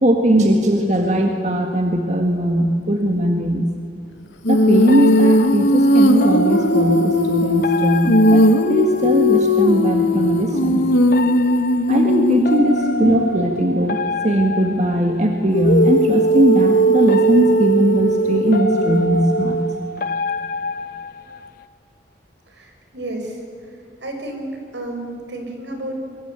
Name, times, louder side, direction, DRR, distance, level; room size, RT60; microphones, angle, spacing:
voice 1, 0.0-3.7 4.5-10.9 11.9-19.6, equal, 40° right, 3 dB, 1.8 m, -19 dB
Female singing, 4.4-13.3 15.5-19.7, equal, 90° left, 1.6 m, -17 dB
sound 1, 4.9-9.5 11.1-15.7 17.0-21.6, left 2 dB, 50° left, 0.9 m, -29 dB
voice 2, 22.5-23.4 24.0-26.1, right 1 dB, 80° right, 3 dB, 5.5 m, -31 dB
23.5 x 23.5 x 8.4 m, 2.4 s
head